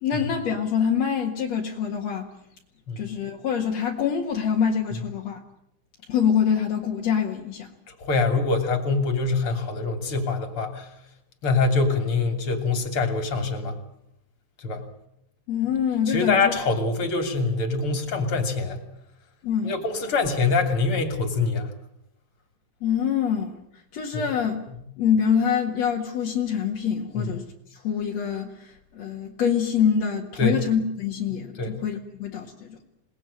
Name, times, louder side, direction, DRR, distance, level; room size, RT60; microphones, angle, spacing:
voice 1, 0.0-2.3 3.0-5.4 6.1-7.7 15.5-16.6 19.4-19.7 22.8-23.6 23.9-24.6 25.0-27.5 27.7-32.8, left 7 dB, 55° left, 0 dB, 2.1 m, -25 dB
voice 2, 7.9-10.9 11.4-13.8 14.6-14.8 16.1-18.8 19.6-21.7 24.1-24.2 27.1-27.3 30.4-30.6 31.3-31.8, left 4 dB, 35° left, 6 dB, 3.3 m, -24 dB
28.0 x 19.5 x 8.8 m, 0.78 s
omnidirectional pair, 5.4 m